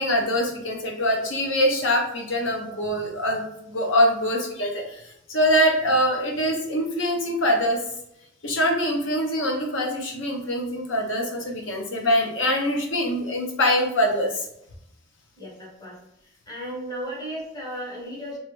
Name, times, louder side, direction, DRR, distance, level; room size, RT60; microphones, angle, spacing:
voice 1, 0.0-7.8 8.4-14.4, equal, 75° left, 2 dB, 0.8 m, -24 dB
voice 2, 15.4-16.0 16.5-18.4, equal, 20° left, -4 dB, 1.0 m, -35 dB
3.2 x 3.1 x 3.1 m, 0.79 s
head